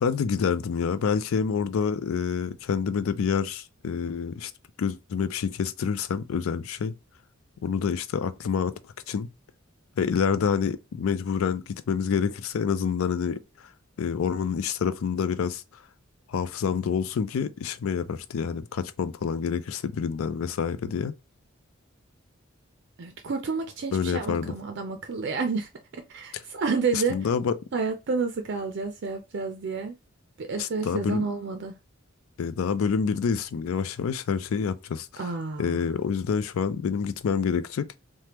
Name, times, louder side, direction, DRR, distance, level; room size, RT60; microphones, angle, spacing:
voice 1, 0.0-4.5 4.8-6.9 7.6-8.8 9.1-9.3 10.0-13.4 14.0-15.6 16.3-21.1 23.9-24.5 26.9-27.6 30.6-31.2 32.4-35.2 35.6-37.9, left 6 dB, 80° left, 0.4 m, -27 dB
voice 2, 23.0-27.2 27.7-30.0 30.4-31.7 35.2-35.8, right 4 dB, 55° right, 0.4 m, -30 dB
3.3 x 2.1 x 2.9 m
head